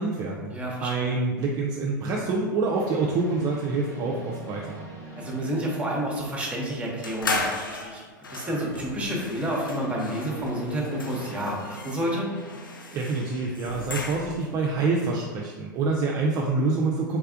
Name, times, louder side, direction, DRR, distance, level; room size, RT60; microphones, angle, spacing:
voice 1, 0.0-0.5 0.8-4.8 12.9-17.2, right 3 dB, 35° right, -2 dB, 0.4 m, -26 dB
voice 2, 0.5-1.1 5.1-8.0 8.3-12.3, right 1 dB, 10° right, -2 dB, 0.9 m, -30 dB
sound 1, 2.7-7.2 8.7-13.5, right 1 dB, 35° left, 1.3 m, -44 dB
sound 2, 7.0-14.6, left 3 dB, 85° left, 0.4 m, -35 dB
3.3 x 3.3 x 2.4 m, 1.4 s
figure-of-eight pair, 90°, 11 cm